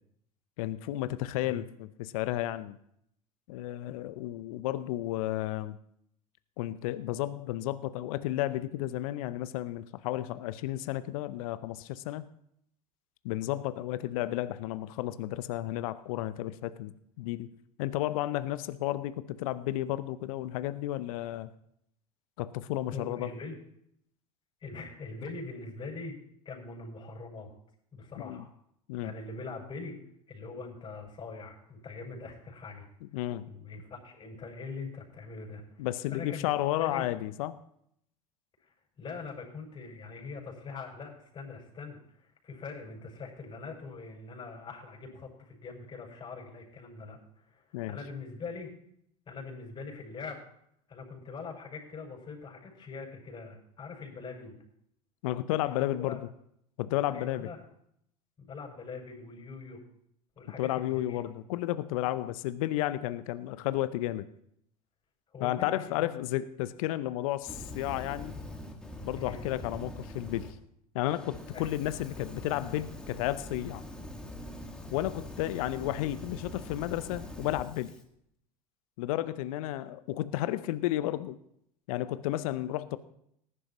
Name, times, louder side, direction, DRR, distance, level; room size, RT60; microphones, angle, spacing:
voice 1, 0.6-2.8 3.5-5.8 6.6-12.3 13.2-17.5 17.8-21.5 22.4-23.3 28.2-28.4 28.9-29.1 33.1-33.5 35.8-37.6 47.7-48.0 55.2-56.2 56.8-57.5 60.6-64.3 65.4-68.4 69.0-70.5 70.9-73.8 74.9-77.9 79.0-81.4 81.9-83.0, left 14 dB, 65° left, 14 dB, 0.7 m, -32 dB
voice 2, 22.9-23.6 24.6-26.2 26.4-27.5 27.9-28.5 29.0-30.0 30.3-32.9 33.5-36.5 36.8-37.1 38.6-48.7 49.3-50.4 50.9-54.6 55.6-56.2 57.1-57.6 58.4-59.8 60.4-61.2 65.3-66.1 69.2-69.4 71.5-71.7, left 4 dB, 25° left, -3 dB, 6.2 m, -43 dB
Fire, 67.4-70.5 71.0-78.0, left 1 dB, 5° left, 1.9 m, -43 dB
19.5 x 11.0 x 3.0 m, 0.71 s
hypercardioid pair, 80°, 20 cm